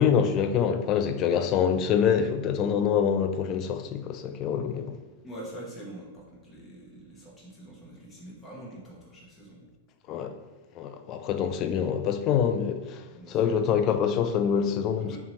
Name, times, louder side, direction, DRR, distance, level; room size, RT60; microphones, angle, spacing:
voice 1, 0.0-5.0 10.1-10.3 10.8-13.0 13.3-15.2, left 7 dB, 35° left, 0.3 m, -25 dB
voice 2, 5.2-9.7 13.1-13.4 15.1-15.2, right 1 dB, 20° left, 1.3 m, -44 dB
4.0 x 2.7 x 3.1 m
figure-of-eight pair, 100°, 0 cm